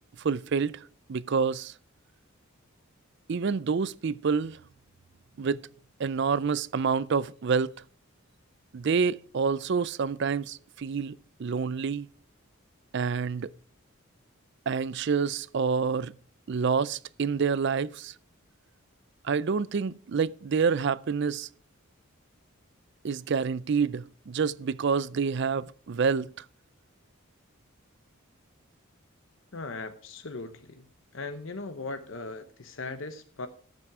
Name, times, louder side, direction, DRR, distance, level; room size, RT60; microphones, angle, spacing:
voice 1, 0.2-1.7 3.3-4.6 5.4-5.6 6.0-7.7 8.7-12.1 12.9-13.5 14.7-16.1 16.5-18.1 19.2-21.5 23.0-26.4, right 5 dB, 55° right, 0.4 m, -28 dB
voice 2, 29.5-30.9 31.1-33.5, left 3 dB, 60° left, 0.9 m, -38 dB
13.5 x 7.4 x 4.8 m
head